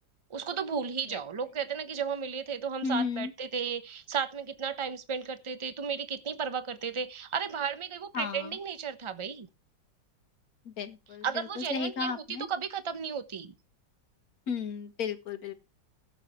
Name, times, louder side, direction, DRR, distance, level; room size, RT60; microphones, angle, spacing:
voice 1, 0.3-9.5 11.2-13.5, right 6 dB, 25° right, 0.7 m, -34 dB
voice 2, 2.8-3.3 8.1-8.5 10.8-11.2 11.7-12.5 14.5-15.5, left 5 dB, 55° left, 1.7 m, -33 dB
16.0 x 6.9 x 4.4 m
omnidirectional pair, 2.0 m